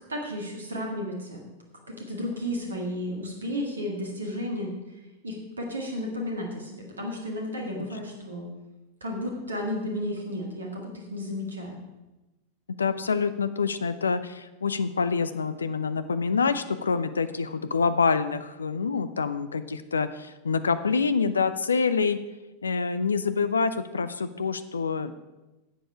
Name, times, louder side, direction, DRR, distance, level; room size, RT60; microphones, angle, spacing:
voice 1, 0.1-1.4 1.9-8.5 9.0-11.8, left 1 dB, 75° right, 1 dB, 1.9 m, -33 dB
voice 2, 12.8-22.2 22.6-25.1, left 5 dB, 75° left, 12 dB, 0.5 m, -26 dB
11.0 x 7.8 x 4.8 m, 1.0 s
figure-of-eight pair, 90°, 0 cm